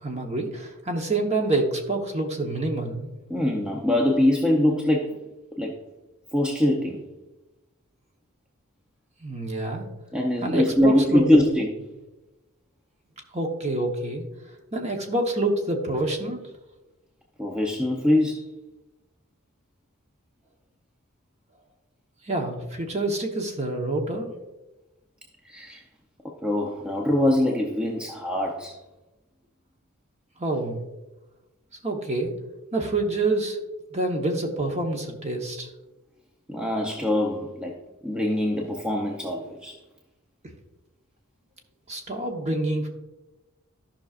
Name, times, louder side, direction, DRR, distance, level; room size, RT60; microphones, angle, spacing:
voice 1, 0.0-3.1 9.2-9.9 10.4-11.4 13.3-14.3 14.7-16.4 22.2-24.3 30.4-30.8 31.8-32.3 32.7-33.6 33.9-35.7 41.9-42.9, right 2 dB, 30° right, 3 dB, 1.0 m, -27 dB
voice 2, 3.3-5.2 5.6-5.7 6.3-7.0 10.1-11.7 17.4-18.4 25.4-25.8 26.2-28.8 36.5-37.7 38.0-39.8, left 1 dB, 5° right, 0 dB, 0.6 m, -23 dB
13.5 x 5.7 x 2.5 m, 1.0 s
head